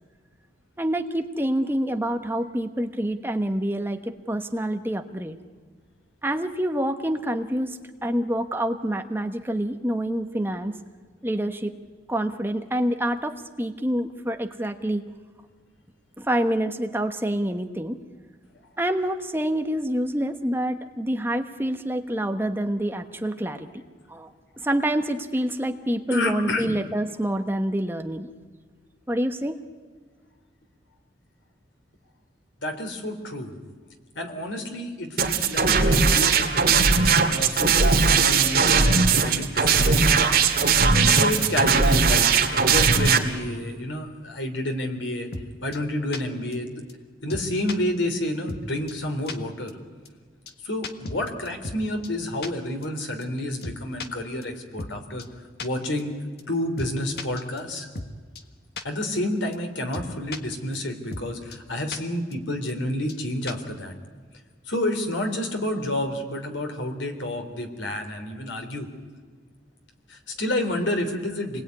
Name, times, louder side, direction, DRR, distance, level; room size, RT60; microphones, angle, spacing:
voice 1, 0.8-5.4 6.2-10.8 11.2-11.7 12.1-15.0 16.2-18.0 18.8-23.8 24.1-24.3 24.6-28.3 29.1-29.6, right 1 dB, 10° right, 6 dB, 1.1 m, -27 dB
voice 2, 26.1-26.7 32.6-33.5 34.2-37.0 37.3-40.0 40.8-45.3 45.6-46.8 47.2-49.7 50.6-55.2 55.6-56.1 56.5-57.9 58.8-63.9 64.7-68.9 70.1-71.6, left 1 dB, 85° left, 5 dB, 3.6 m, -29 dB
sound 1, 35.2-43.2, right 5 dB, 50° right, 2.4 m, -19 dB
sound 2, 45.3-45.5 45.7-45.8 46.1-46.2 46.5-46.6 46.9-47.0 47.3-47.8 48.1-48.2 48.5-48.6 48.9-49.0 49.3-49.4 49.7-49.8 50.0-50.1 50.5-50.6 50.8-51.8 52.0-52.1 52.4-52.5 52.8-52.9 53.2-53.3 53.6-54.1 54.4-54.5 54.8-54.9 55.2-55.3 55.6-55.7 56.0-56.1 56.4-56.5 56.8-56.9 57.2-58.1 58.3-58.4 58.8-58.9 59.1-59.2 59.5-59.6 59.9-60.4 60.7-60.8 61.1-61.2 61.5-61.6 61.9-62.0 62.3-62.4 62.7-62.8 63.1-63.2 63.5-63.7, left 3 dB, 55° left, 1.5 m, -35 dB
28.0 x 20.5 x 9.6 m, 1.5 s
head